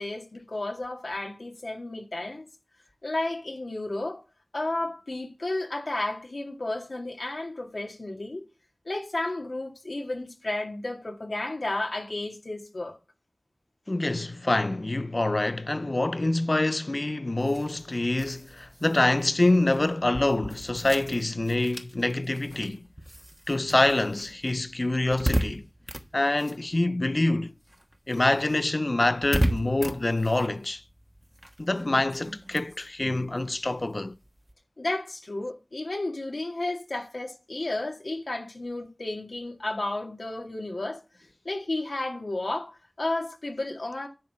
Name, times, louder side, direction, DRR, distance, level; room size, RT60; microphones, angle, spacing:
voice 1, 0.0-2.5 3.0-4.2 4.5-8.5 8.8-13.0 34.8-41.0 41.4-44.1, left 2 dB, 85° left, 2.3 m, -32 dB
voice 2, 13.9-22.8 23.5-25.7 26.1-27.5 28.1-30.8 31.6-34.1, left 2 dB, 55° left, 0.4 m, -26 dB
sound 1, 17.4-27.3 27.6-34.5, equal, 15° right, 1.2 m, -36 dB
10.5 x 3.9 x 6.2 m
wide cardioid pair, 45°, 0 cm